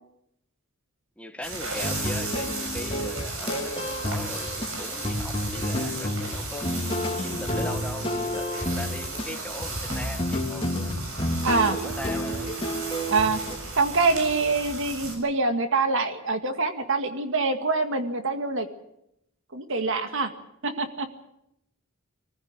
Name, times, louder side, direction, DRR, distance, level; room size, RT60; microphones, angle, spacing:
voice 1, 1.2-6.7 7.1-10.9 11.6-12.6, left 1 dB, 5° left, 5 dB, 1.8 m, -39 dB
sound 1, 1.4-15.1, right 2 dB, 80° right, 7.3 m, -35 dB
sound 2, 1.8-13.6, equal, 25° left, 3.0 m, -30 dB
voice 2, 11.4-11.8 13.1-13.4 13.8-18.7 19.5-20.3 20.6-21.1, right 3 dB, 65° right, 7 dB, 2.0 m, -25 dB
22.5 x 15.0 x 9.7 m, 0.81 s
head